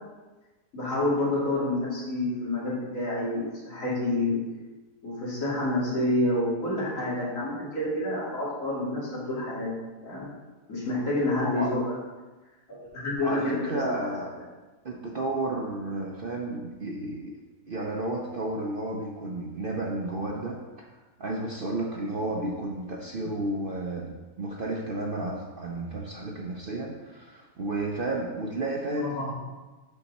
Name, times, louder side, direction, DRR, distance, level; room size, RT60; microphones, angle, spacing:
voice 1, 0.7-4.4 5.0-9.7 10.0-10.3 10.7-11.8 12.7-14.0 29.0-29.4, left 1 dB, 50° left, -9 dB, 3.1 m, -28 dB
voice 2, 11.4-11.7 13.2-14.3 14.8-17.4 17.7-20.9 21.2-29.2, right 2 dB, 60° right, -1 dB, 0.6 m, -32 dB
7.2 x 5.7 x 4.0 m, 1.2 s
omnidirectional pair, 1.8 m